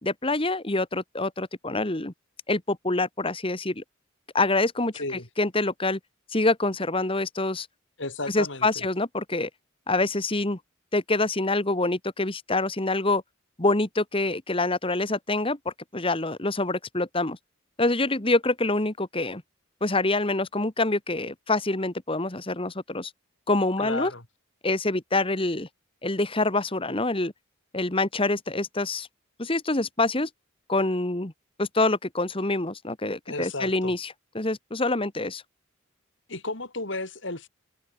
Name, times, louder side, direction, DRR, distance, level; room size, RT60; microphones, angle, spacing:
voice 1, 0.0-2.1 2.5-3.8 4.3-4.9 5.4-6.0 6.3-7.7 8.3-9.5 9.9-10.6 10.9-13.2 13.6-17.4 17.8-19.4 19.8-23.1 23.5-24.1 24.6-25.7 26.0-27.3 27.7-29.1 29.4-30.3 30.7-31.3 31.6-35.4, left 2 dB, 25° left, 1.8 m, -26 dB
voice 2, 4.9-5.3 8.0-8.8 23.8-24.2 33.3-33.9 36.3-37.5, left 2 dB, 65° left, 4.5 m, -33 dB
head